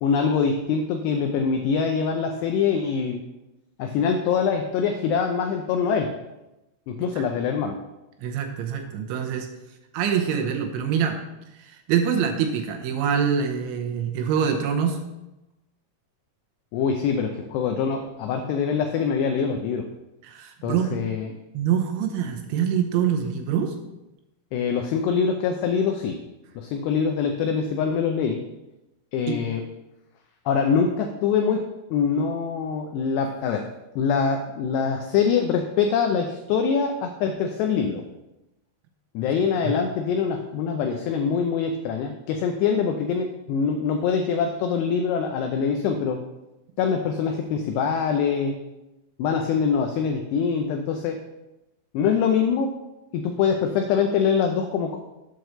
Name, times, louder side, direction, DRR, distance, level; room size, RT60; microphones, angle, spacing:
voice 1, 0.0-3.2 3.8-6.1 6.9-7.8 16.7-19.9 20.6-21.4 24.5-26.2 26.6-28.4 29.1-29.6 30.5-31.6 31.9-33.6 34.0-38.0 39.1-46.2 46.8-48.6 49.2-51.2 51.9-52.7 53.1-55.0, left 6 dB, 90° left, 4 dB, 2.4 m, -24 dB
voice 2, 8.2-9.5 9.9-11.2 11.6-15.0 20.2-21.0 21.5-23.7 29.3-29.4 39.6-39.7, right 8 dB, 80° right, 3 dB, 3.1 m, -25 dB
8.5 x 4.6 x 6.6 m, 0.97 s
omnidirectional pair, 5.6 m